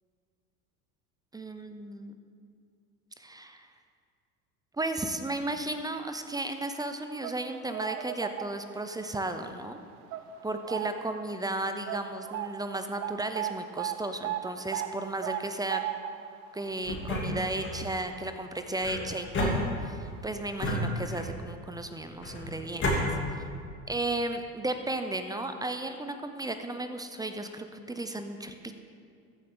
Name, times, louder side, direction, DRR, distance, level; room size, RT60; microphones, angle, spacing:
voice 1, 1.3-2.1 3.2-3.7 4.7-9.8 10.4-15.8 16.5-22.9 23.3-23.4 23.9-28.6, right 2 dB, 10° right, 7 dB, 0.5 m, -34 dB
sound 1, 6.9-8.9 9.3-9.6 10.1-11.2 11.5-11.6 11.9-18.9 19.2-19.4 20.2-20.3 20.7-20.8, right 11 dB, 75° right, 0.7 m, -37 dB
sound 2, 16.8-17.8 18.8-20.1 20.6-21.5 22.2-23.0, left 1 dB, 25° left, 2.5 m, -31 dB
14.5 x 6.7 x 3.8 m, 2.3 s
hypercardioid pair, 85°, 44 cm